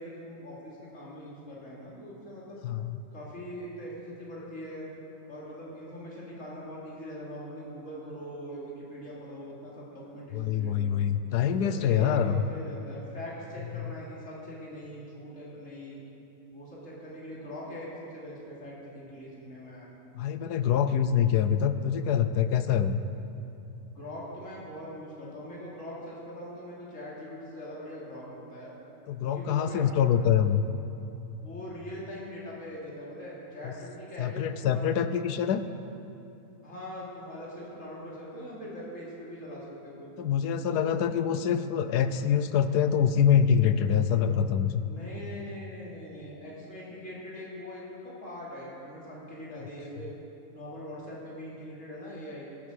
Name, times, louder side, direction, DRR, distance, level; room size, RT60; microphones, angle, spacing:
voice 1, 0.0-2.6 3.1-4.9 5.3-11.0 11.4-16.0 16.5-19.9 23.9-28.7 29.2-29.9 31.4-34.9 36.6-40.5 40.9-41.6 44.8-50.1 50.5-52.5, equal, 50° left, -6 dB, 3.3 m, -42 dB
voice 2, 2.6-3.0 10.3-12.4 13.8-13.9 20.1-23.0 29.1-30.7 33.6-33.7 34.2-35.6 40.2-44.8, left 8 dB, 80° left, 11 dB, 1.2 m, -25 dB
16.5 x 9.0 x 6.4 m, 2.8 s
omnidirectional pair, 1.7 m